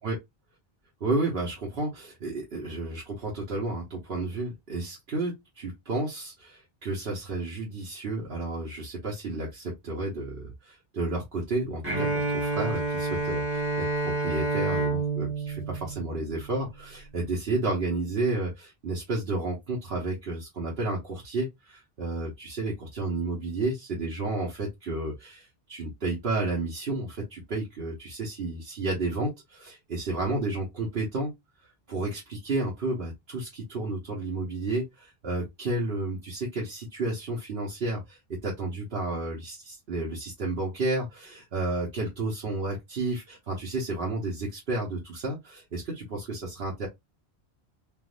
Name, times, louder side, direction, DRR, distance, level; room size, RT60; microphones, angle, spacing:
voice 1, 1.0-31.3 31.9-46.9, right 2 dB, 70° right, 1.2 m, -31 dB
Bowed string instrument, 11.8-16.7, right 3 dB, 10° right, 1.2 m, -29 dB
3.4 x 2.6 x 2.4 m
omnidirectional pair, 1.0 m